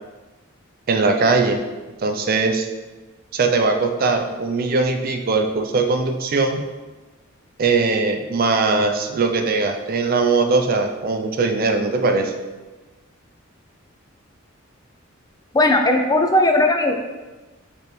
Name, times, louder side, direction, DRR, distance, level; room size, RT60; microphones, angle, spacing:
voice 1, 0.9-1.6 2.0-2.7 3.3-6.6 7.6-12.3, right 3 dB, 45° right, 5 dB, 0.4 m, -20 dB
voice 2, 15.5-16.9, left 2 dB, 20° left, 3 dB, 0.4 m, -17 dB
5.2 x 3.1 x 3.1 m, 1.2 s
head